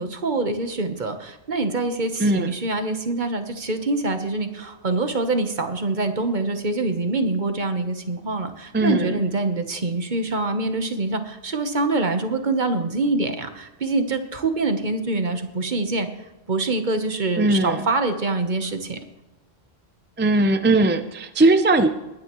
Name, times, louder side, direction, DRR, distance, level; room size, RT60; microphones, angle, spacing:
voice 1, 0.0-16.1 16.5-19.0, right 3 dB, 50° right, 7 dB, 1.2 m, -25 dB
voice 2, 2.2-2.5 8.7-9.2 17.4-17.9 20.2-21.9, right 2 dB, 15° right, 8 dB, 0.5 m, -19 dB
20.5 x 9.9 x 3.1 m, 1.1 s
omnidirectional pair, 1.0 m